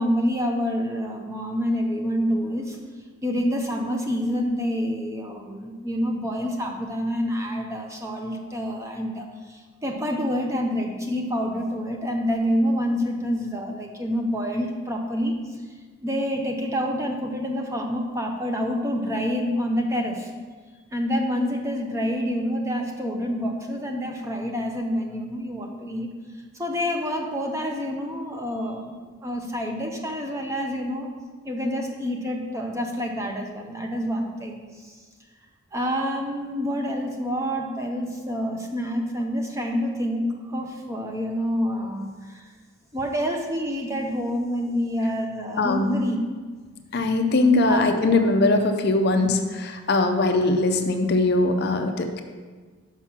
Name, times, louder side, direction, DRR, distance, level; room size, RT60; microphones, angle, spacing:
voice 1, 0.0-2.8 3.2-15.4 16.0-20.3 20.9-26.1 26.5-28.9 29.2-31.1 31.4-35.0 35.7-42.5 42.9-46.2 47.6-47.9, equal, 15° right, 1 dB, 0.6 m, -27 dB
voice 2, 45.6-45.9 46.9-52.2, left 2 dB, 45° left, 6 dB, 0.5 m, -21 dB
5.8 x 5.6 x 5.8 m, 1.5 s
head